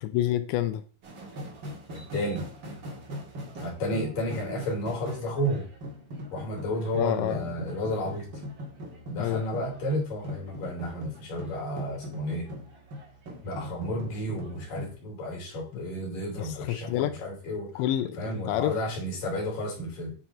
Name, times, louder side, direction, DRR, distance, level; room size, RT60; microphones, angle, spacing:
voice 1, 0.0-0.8 7.0-7.5 9.2-9.4 15.7-15.8 16.4-17.2 17.8-18.8, left 12 dB, 85° left, 2.6 m, -28 dB
sound 1, 1.0-15.0, equal, 85° right, 1.0 m, -41 dB
voice 2, 1.9-2.4 3.6-5.7 6.3-8.3 9.1-12.5 13.4-17.8 18.2-20.2, equal, 50° left, 4.2 m, -32 dB
10.5 x 4.2 x 4.3 m
omnidirectional pair, 5.6 m